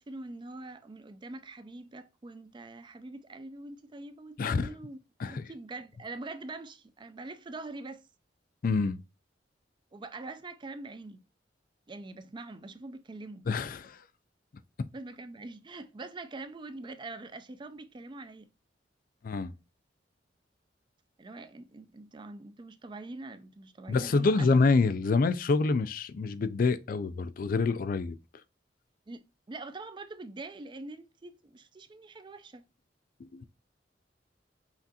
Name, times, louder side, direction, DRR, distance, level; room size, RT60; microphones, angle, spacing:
voice 1, 0.0-8.1 9.9-11.2 11.9-13.5 14.9-18.5 19.4-19.5 21.2-24.5 29.1-32.6, right 2 dB, 25° right, 0.4 m, -44 dB
voice 2, 4.4-4.7 5.2-5.5 8.6-9.0 13.5-14.0 19.2-19.5 23.9-28.1 33.2-33.4, left 4 dB, 50° left, 0.4 m, -27 dB
5.7 x 2.5 x 2.7 m
head